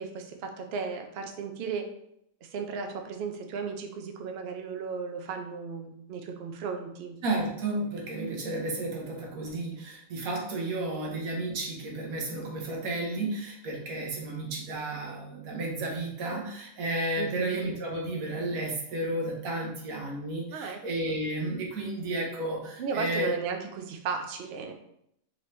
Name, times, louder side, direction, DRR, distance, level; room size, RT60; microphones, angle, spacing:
voice 1, 0.0-1.9 2.4-7.2 11.0-11.2 17.2-17.6 20.5-20.8 22.8-24.7, right 5 dB, 60° right, 5 dB, 0.7 m, -35 dB
voice 2, 7.2-23.4, right 2 dB, 90° right, 0 dB, 1.4 m, -32 dB
4.1 x 2.9 x 3.1 m, 0.76 s
omnidirectional pair, 1.4 m